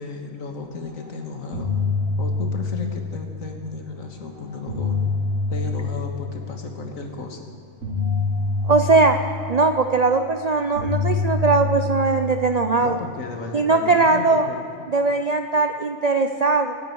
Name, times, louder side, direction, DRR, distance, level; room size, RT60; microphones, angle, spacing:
voice 1, 0.0-1.7 2.2-5.0 5.5-7.4 12.8-14.6, left 4 dB, 80° left, 3 dB, 2.0 m, -34 dB
sound 1, 0.9-1.1 1.4-3.7 4.4-6.8 7.8-10.3 10.7-13.3, left 4 dB, 80° right, 5.2 m, -26 dB
voice 2, 8.6-9.2 9.5-13.0 13.5-14.5 14.9-16.7, right 3 dB, 50° right, 6 dB, 0.5 m, -19 dB
25.5 x 10.0 x 4.7 m, 2.6 s
omnidirectional pair, 1.4 m